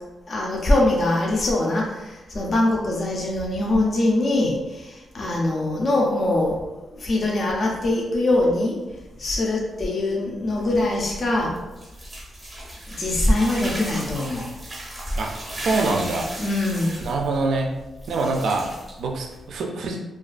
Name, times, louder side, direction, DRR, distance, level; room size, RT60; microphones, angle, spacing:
voice 1, 0.3-8.7 9.2-11.6 13.0-14.4 16.4-17.0, left 2 dB, 40° left, -2 dB, 0.4 m, -23 dB
sound 1, 10.4-19.6, right 1 dB, 15° right, 0.6 m, -36 dB
voice 2, 15.2-16.3 17.0-17.7 18.1-20.0, right 3 dB, 75° right, 2 dB, 0.3 m, -25 dB
2.3 x 2.2 x 2.4 m, 1.1 s
wide cardioid pair, 135°, 0 cm